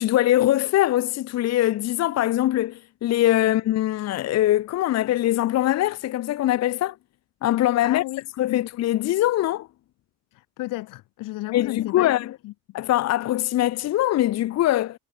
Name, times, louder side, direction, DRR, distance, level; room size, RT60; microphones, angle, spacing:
voice 1, 0.0-6.9 7.4-8.0 8.4-9.7 11.5-12.3 12.7-15.0, left 14 dB, 50° left, 0.8 m, -22 dB
voice 2, 7.8-8.7 10.3-12.1 12.4-12.5, left 18 dB, 70° left, 1.2 m, -33 dB
cardioid pair, 110°, 34 cm